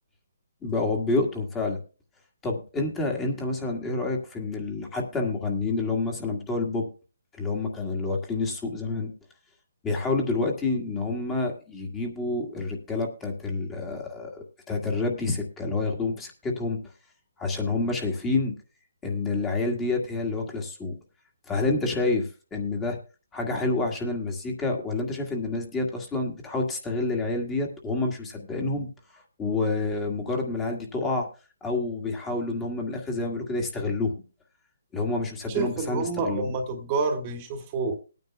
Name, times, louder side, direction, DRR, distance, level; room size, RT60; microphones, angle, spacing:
voice 1, 0.6-1.8 2.4-6.9 7.4-9.1 9.8-16.8 17.4-18.5 19.0-21.0 21.5-23.0 23.3-28.9 29.1-31.3 31.6-34.1 34.9-36.5, left 3 dB, 10° left, 1 dB, 1.8 m, -28 dB
voice 2, 35.5-38.0, right 4 dB, 25° right, 5 dB, 1.4 m, -28 dB
21.5 x 9.4 x 2.2 m, 0.34 s
hypercardioid pair, 160°, 0 cm